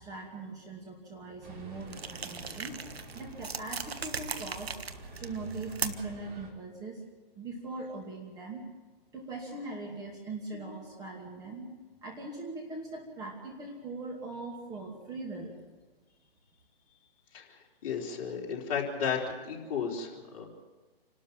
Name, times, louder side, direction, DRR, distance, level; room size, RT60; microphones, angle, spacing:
voice 1, 0.0-2.8 3.1-4.7 5.1-7.0 7.4-8.7 9.1-11.7 12.0-15.5, right 3 dB, 10° right, -1 dB, 2.5 m, -41 dB
sound 1, 1.4-6.5, right 2 dB, 50° right, 4.8 m, -47 dB
sound 2, 1.9-6.2, right 5 dB, 80° right, 1.5 m, -39 dB
voice 2, 17.3-19.2 19.5-20.4, left 7 dB, 35° left, -2 dB, 4.2 m, -34 dB
28.5 x 13.0 x 7.5 m, 1.3 s
hypercardioid pair, 145°, 31 cm